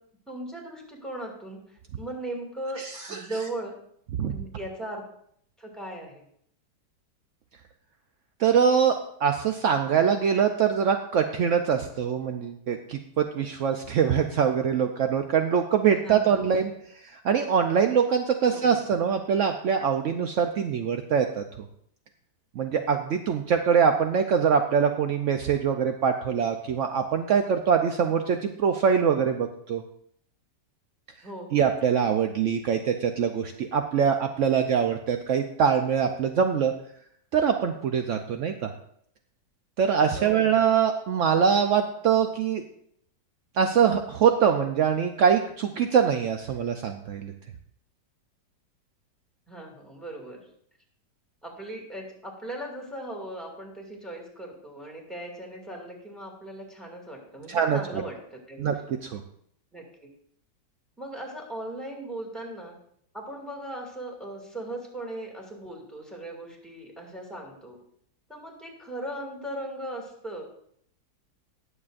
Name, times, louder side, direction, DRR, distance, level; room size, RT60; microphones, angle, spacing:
voice 1, 0.3-2.8 3.1-3.7 4.2-5.0 5.6-6.2 16.0-16.4 18.5-18.8 31.2-31.7 40.1-40.5 49.5-50.4 51.4-58.7 59.7-59.8 61.0-62.8 63.1-67.8 68.3-70.4, right 1 dB, ahead, 0 dB, 2.1 m, -38 dB
voice 2, 2.8-3.2 4.2-4.3 8.4-9.0 9.2-16.7 17.1-21.4 22.6-29.8 31.5-36.7 37.3-38.7 39.8-42.6 43.6-47.3 57.5-57.8 58.6-58.7 59.0-59.2, right 7 dB, 75° right, 5 dB, 0.7 m, -23 dB
19.5 x 7.2 x 2.5 m, 0.68 s
omnidirectional pair, 2.0 m